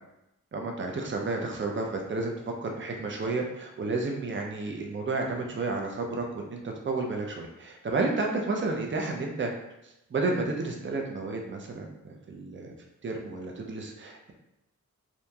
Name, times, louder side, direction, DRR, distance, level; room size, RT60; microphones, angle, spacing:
voice 1, 0.5-9.5 10.1-12.7 13.0-14.3, right 3 dB, 35° right, 1 dB, 0.5 m, -31 dB
2.9 x 2.5 x 2.2 m, 0.88 s
wide cardioid pair, 70°, 33 cm